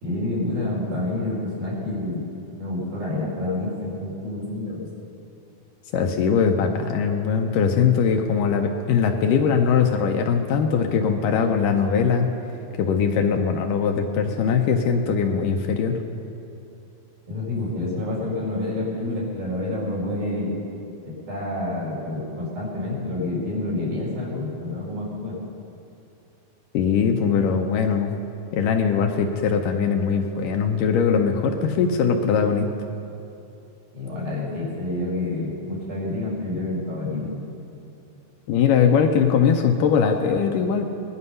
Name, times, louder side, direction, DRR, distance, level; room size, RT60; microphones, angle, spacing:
voice 1, 0.0-2.2 2.6-4.9 17.3-20.6 21.0-25.4 33.9-37.3, left 2 dB, 80° right, -6 dB, 6.3 m, -28 dB
voice 2, 5.9-12.3 12.8-16.0 26.7-28.1 28.5-32.7 38.5-40.9, left 6 dB, 75° left, 4 dB, 2.2 m, -21 dB
19.5 x 11.5 x 5.5 m, 2.7 s
omnidirectional pair, 4.2 m